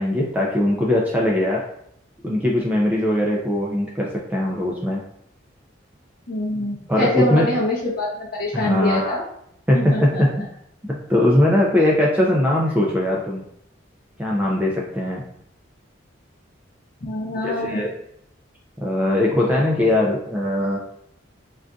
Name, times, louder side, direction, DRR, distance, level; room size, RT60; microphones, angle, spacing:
voice 1, 0.0-1.6 2.2-5.0 6.9-7.5 8.5-9.2 9.7-10.3 10.9-13.4 14.2-15.2 17.4-17.9 18.8-20.8, left 1 dB, 10° right, -3 dB, 0.3 m, -20 dB
voice 2, 6.3-9.2 9.7-10.5 17.0-17.8, left 1 dB, 50° left, -6 dB, 0.6 m, -25 dB
3.7 x 2.4 x 2.2 m, 0.72 s
head